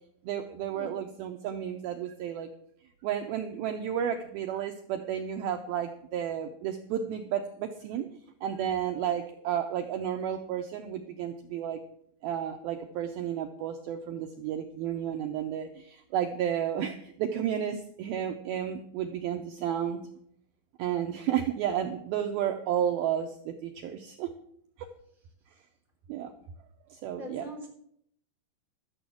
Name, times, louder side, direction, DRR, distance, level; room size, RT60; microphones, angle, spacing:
voice 1, 0.2-2.5 3.0-8.1 8.4-11.8 12.2-20.0 20.8-24.3 24.8-24.9 26.1-26.3 26.9-27.4, right 9 dB, 90° right, 5 dB, 2.1 m, -32 dB
voice 2, 27.2-27.7, left 1 dB, 55° left, 0 dB, 1.3 m, -41 dB
13.0 x 7.0 x 7.5 m, 0.68 s
omnidirectional pair, 5.3 m